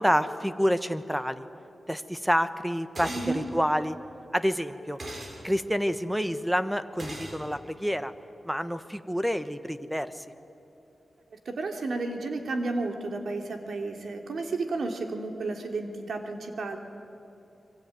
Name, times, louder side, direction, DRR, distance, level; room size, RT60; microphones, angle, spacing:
voice 1, 0.0-1.4 1.9-4.0 4.3-5.0 5.4-8.1 8.5-10.2, equal, 5° right, 11 dB, 1.1 m, -28 dB
sound 1, 2.9-3.3 5.0-5.3 7.0-7.4, right 1 dB, 45° right, 6.5 m, -38 dB
voice 2, 3.1-3.4 11.3-16.8, right 3 dB, 75° right, 4 dB, 3.1 m, -32 dB
26.0 x 24.0 x 9.4 m, 2.8 s
wide cardioid pair, 95°, 0 cm